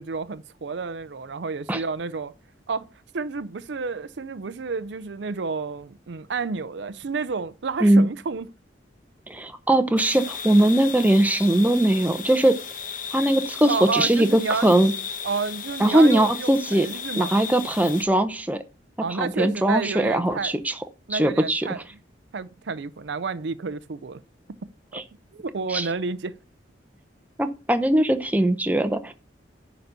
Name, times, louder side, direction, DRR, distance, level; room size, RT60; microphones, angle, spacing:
voice 1, 0.0-2.3 2.7-2.9 3.1-8.5 13.7-14.9 15.2-17.4 19.0-20.5 21.1-21.8 22.3-24.2 24.9-25.0 25.3-26.3, right 4 dB, 70° right, 0.5 m, -30 dB
voice 2, 9.3-12.6 13.1-14.9 15.8-16.9 17.2-18.6 19.2-20.7 21.1-21.7 24.9-25.0 25.7-25.9 27.4-29.1, right 1 dB, 10° right, 0.7 m, -20 dB
sound 1, 10.0-18.0, left 7 dB, 45° left, 1.0 m, -35 dB
10.5 x 4.1 x 6.7 m
head